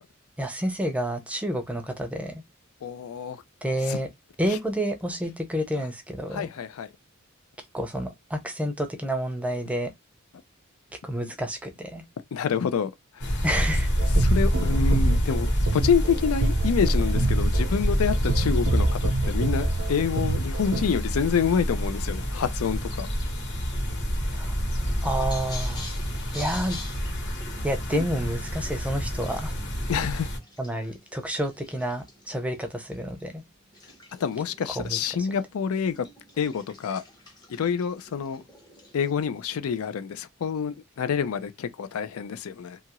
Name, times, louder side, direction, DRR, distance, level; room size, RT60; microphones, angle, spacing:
voice 1, 0.4-2.4 3.6-4.1 4.4-6.5 7.7-9.9 11.0-12.0 13.4-13.9 24.3-24.6 25.0-25.9 26.3-26.8 27.6-29.5 30.6-33.4 34.7-35.0, right 1 dB, 5° right, 0.5 m, -29 dB
voice 2, 2.8-3.4 3.9-4.0 4.5-4.6 5.8-5.9 6.3-6.9 12.3-13.4 14.2-23.1 27.9-28.0 29.9-30.3 34.1-36.1 36.4-37.0 37.5-38.4 38.9-42.8, left 7 dB, 85° left, 0.4 m, -27 dB
sound 1, 13.2-30.4, equal, 60° left, 1.1 m, -27 dB
sound 2, 14.0-21.0, right 2 dB, 80° right, 0.7 m, -28 dB
sound 3, 23.4-39.1, left 2 dB, 20° left, 0.8 m, -47 dB
2.8 x 2.4 x 2.9 m
head